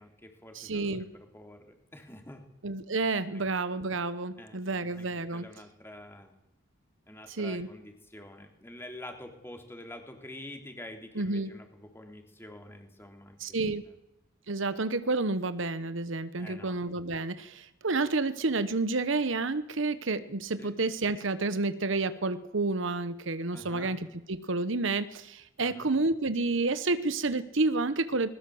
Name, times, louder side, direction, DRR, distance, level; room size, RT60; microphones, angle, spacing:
voice 1, 0.0-2.4 3.3-3.5 4.4-6.3 7.1-13.9 16.4-16.8 20.6-20.7 23.5-23.9 25.6-25.9, left 1 dB, 10° left, 4 dB, 3.3 m, -47 dB
voice 2, 0.5-1.1 2.6-5.5 7.4-7.7 11.2-11.5 13.4-13.8 14.5-24.0 24.3-28.3, right 3 dB, 60° right, 13 dB, 1.0 m, -30 dB
21.0 x 20.5 x 7.8 m, 0.89 s
head